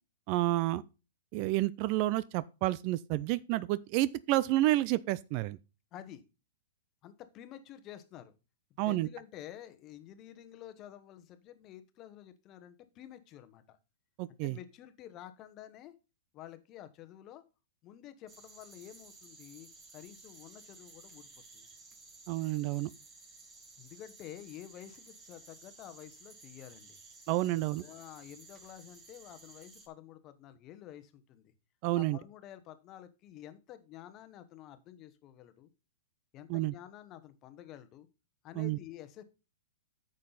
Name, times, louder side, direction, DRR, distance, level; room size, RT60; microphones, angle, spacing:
voice 1, 0.3-0.8 1.3-5.6 8.8-9.1 14.2-14.6 22.3-22.9 27.3-27.8 31.8-32.2 36.5-36.7 38.6-38.8, right 16 dB, 40° right, 0.3 m, -30 dB
voice 2, 5.9-6.2 7.0-8.3 8.7-13.8 14.4-15.9 16.3-17.4 17.8-21.7 23.8-27.0 27.8-31.5 32.0-35.7 36.3-38.1 38.4-39.2, left 11 dB, 30° left, 1.0 m, -50 dB
sound 1, 18.3-29.9, right 3 dB, 20° right, 1.8 m, -55 dB
9.8 x 6.5 x 4.0 m
hypercardioid pair, 145°, 0 cm